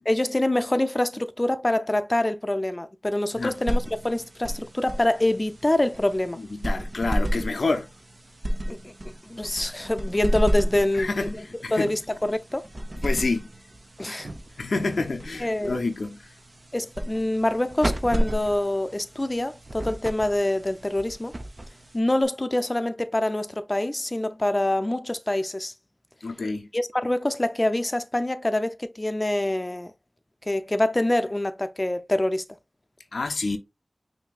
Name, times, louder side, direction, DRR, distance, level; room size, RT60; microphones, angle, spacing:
voice 1, 0.1-6.4 8.7-8.9 9.3-11.3 11.7-12.7 14.0-14.3 15.4-15.8 16.7-21.3 21.9-25.7 26.7-29.9 30.5-32.4, left 1 dB, 30° left, 0.5 m, -25 dB
sound 1, 3.3-22.2, equal, 40° right, 0.6 m, -32 dB
voice 2, 6.4-7.9 10.9-12.0 13.0-13.5 14.6-16.3 26.2-26.7 33.1-33.6, left 3 dB, 80° left, 0.5 m, -28 dB
sound 2, 14.0-15.4, right 2 dB, 80° right, 1.0 m, -39 dB
5.6 x 2.7 x 2.4 m
wide cardioid pair, 45°, 0 cm